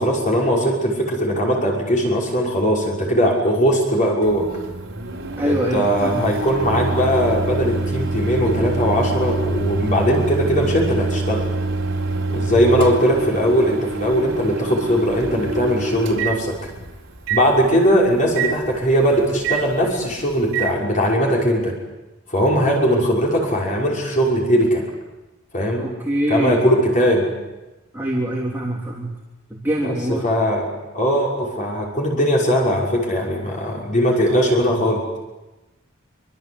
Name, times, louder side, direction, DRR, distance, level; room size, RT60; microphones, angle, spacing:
voice 1, 0.0-4.5 5.4-11.4 12.3-16.5 17.3-21.7 22.3-24.9 25.5-25.8 26.3-27.3 29.8-30.0 30.2-30.7 30.9-35.0, equal, 40° left, -2 dB, 6.0 m, -19 dB
Microwave oven, 4.2-20.7, right 3 dB, 65° right, 4.3 m, -26 dB
voice 2, 5.4-6.3 25.8-26.6 27.9-29.1 29.5-30.2, right 1 dB, 10° right, -3 dB, 3.5 m, -24 dB
26.5 x 25.0 x 8.1 m, 1.0 s
head